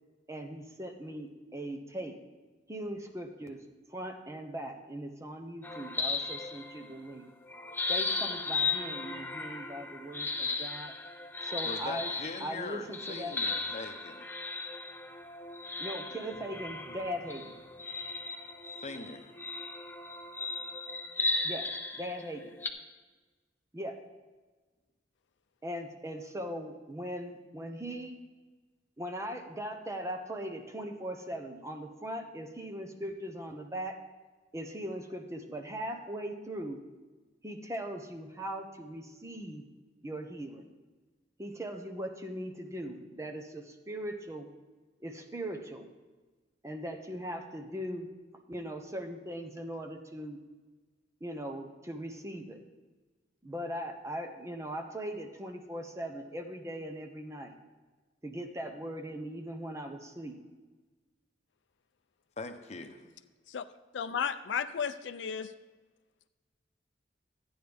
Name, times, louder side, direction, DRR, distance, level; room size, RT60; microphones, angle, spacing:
voice 1, 0.3-2.2 2.7-3.6 3.9-7.3 7.9-10.9 11.4-12.1 12.4-13.4 15.8-17.6 21.4-21.7 22.0-22.4 23.7-24.0 25.6-28.2 29.0-34.0 34.5-36.8 37.4-39.6 40.0-40.7 41.4-44.5 45.0-45.9 46.6-48.1 48.5-50.4 51.2-52.6 53.4-57.5 58.2-60.4, equal, 15° right, 5 dB, 0.9 m, -39 dB
sound 1, 5.6-7.1 7.5-22.7, left 3 dB, 10° left, 0.6 m, -36 dB
voice 2, 11.6-14.3 18.8-19.3 62.4-63.0, left 3 dB, 40° left, 7 dB, 0.9 m, -42 dB
voice 3, 63.9-65.5, left 7 dB, 75° left, 10 dB, 0.4 m, -33 dB
13.0 x 9.5 x 3.5 m, 1.3 s
head